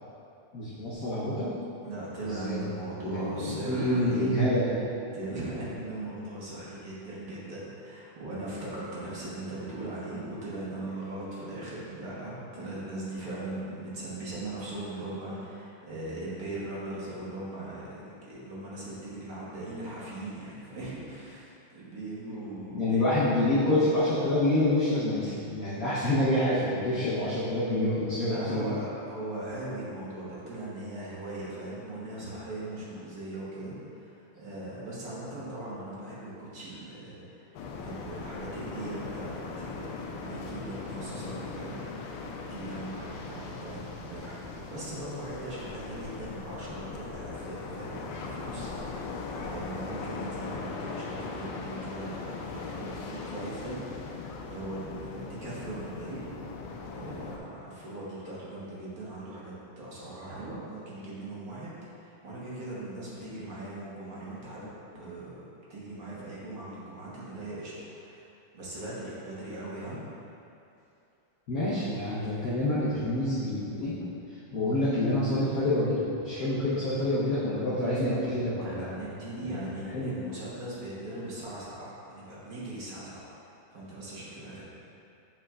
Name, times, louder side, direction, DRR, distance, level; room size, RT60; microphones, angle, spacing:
voice 1, 0.5-1.5 2.3-2.6 3.1-4.8 22.7-28.8 71.5-74.1 74.5-79.1 79.4-79.6 79.9-80.2, left 1 dB, 55° left, -11 dB, 1.2 m, -27 dB
voice 2, 1.8-4.3 5.1-23.0 28.2-37.4 37.8-41.8 42.4-49.1 49.4-54.1 54.4-56.2 56.9-65.4 65.7-68.2 68.5-70.0 78.6-83.3 83.7-84.6, right 2 dB, 50° right, -8 dB, 1.5 m, -39 dB
sound 1, 37.5-57.4, left 4 dB, 80° left, 1.4 m, -39 dB
6.9 x 5.6 x 2.4 m, 2.6 s
omnidirectional pair, 2.2 m